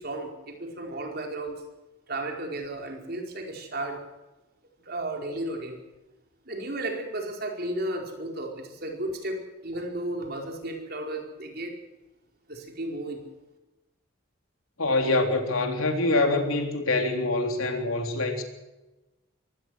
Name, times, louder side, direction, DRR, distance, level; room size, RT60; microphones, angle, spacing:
voice 1, 0.0-1.6 2.1-4.0 4.8-5.8 6.4-11.7 12.5-13.2, right 1 dB, 45° right, 2 dB, 4.7 m, -34 dB
voice 2, 14.8-18.4, left 2 dB, 85° left, 5 dB, 3.6 m, -25 dB
23.5 x 17.5 x 6.4 m, 1.0 s
head